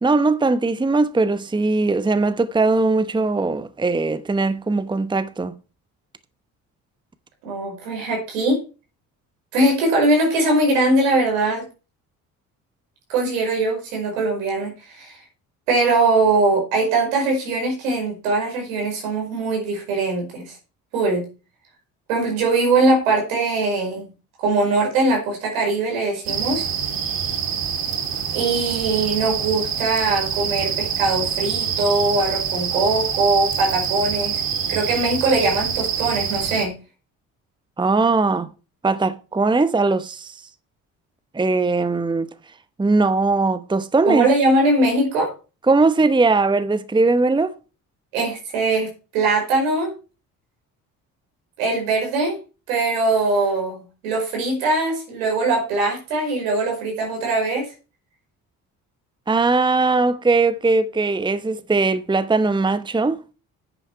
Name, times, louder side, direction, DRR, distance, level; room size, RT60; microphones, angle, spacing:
voice 1, 0.0-5.5 37.8-38.5 38.8-40.4 41.3-42.3 42.8-44.3 45.7-47.5 59.3-63.2, right 3 dB, 10° right, 0.9 m, -20 dB
voice 2, 7.4-8.6 9.5-11.7 13.1-15.2 15.7-20.5 20.9-21.2 22.1-24.1 24.4-26.7 28.3-34.4 34.7-36.7 44.1-45.3 48.1-49.9 51.6-52.4 52.7-57.7, right 2 dB, 80° right, 5.2 m, -21 dB
sound 1, 26.2-36.7, right 8 dB, 55° right, 2.5 m, -26 dB
10.0 x 9.1 x 4.7 m
hypercardioid pair, 50°, 41 cm